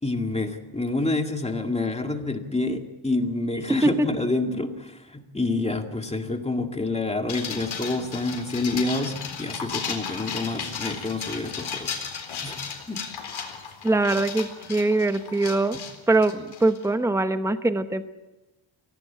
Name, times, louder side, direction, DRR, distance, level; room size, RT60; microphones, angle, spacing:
voice 1, 0.0-12.1 12.4-12.6 12.9-13.0, left 2 dB, 15° left, 4 dB, 2.1 m, -28 dB
sound 1, 7.3-16.8, left 6 dB, 70° left, 4.1 m, -35 dB
voice 2, 13.8-15.8 16.1-18.1, right 2 dB, 5° right, 9 dB, 0.9 m, -23 dB
24.5 x 17.5 x 8.5 m, 1.0 s
wide cardioid pair, 140°, 48 cm